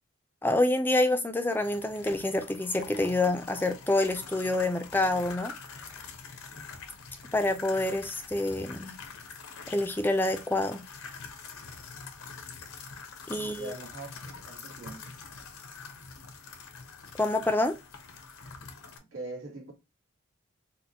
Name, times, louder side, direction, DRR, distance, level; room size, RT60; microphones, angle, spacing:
voice 1, 0.4-5.5 7.3-9.0 9.7-10.8 13.3-13.7 17.2-17.8, left 2 dB, 10° left, 0.4 m, -27 dB
sound 1, 1.5-19.0, left 5 dB, 85° left, 0.8 m, -45 dB
voice 2, 13.3-15.1 19.0-19.7, right 2 dB, 80° right, 1.9 m, -42 dB
4.1 x 2.1 x 2.7 m
head